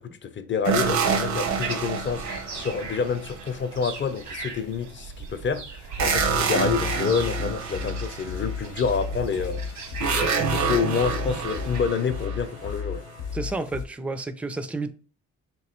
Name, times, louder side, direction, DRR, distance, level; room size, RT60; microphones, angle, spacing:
voice 1, 0.0-13.0, left 6 dB, 40° left, 0.6 m, -28 dB
sound 1, 0.7-3.6 6.0-8.7 10.0-13.1, right 5 dB, 70° right, 0.8 m, -27 dB
sound 2, 0.7-11.8, right 4 dB, 90° right, 1.4 m, -38 dB
sound 3, 6.0-13.9, left 6 dB, 80° left, 0.8 m, -34 dB
voice 2, 13.3-14.9, right 3 dB, 5° right, 0.4 m, -31 dB
3.5 x 3.0 x 4.3 m
cardioid pair, 90°, 30 cm